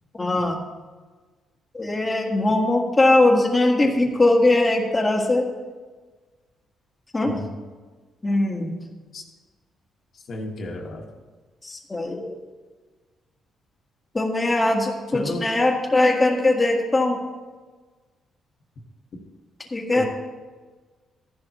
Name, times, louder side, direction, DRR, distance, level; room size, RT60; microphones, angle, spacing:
voice 1, 0.1-0.6 1.7-5.5 7.1-7.3 8.2-8.8 11.6-12.3 14.1-17.2 19.7-20.0, left 2 dB, 20° left, 0 dB, 1.7 m, -20 dB
voice 2, 10.1-11.0 15.1-15.5 20.0-20.1, left 2 dB, 55° left, 0 dB, 1.7 m, -32 dB
14.0 x 10.5 x 3.1 m, 1.4 s
cardioid pair, 90°, 0 cm